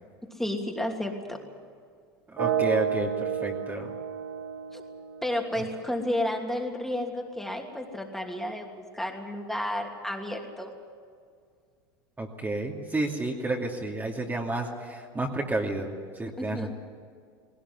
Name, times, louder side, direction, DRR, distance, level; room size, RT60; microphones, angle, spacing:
voice 1, 0.3-1.4 4.7-4.8 5.2-10.7 16.4-16.7, left 1 dB, 5° left, 1 dB, 2.9 m, -32 dB
voice 2, 2.3-3.9 12.2-16.7, right 2 dB, 15° right, 0 dB, 2.7 m, -31 dB
sound 1, 2.4-6.3, right 9 dB, 80° right, 1.4 m, -31 dB
19.5 x 18.0 x 9.7 m, 2.1 s
hypercardioid pair, 85°, 12 cm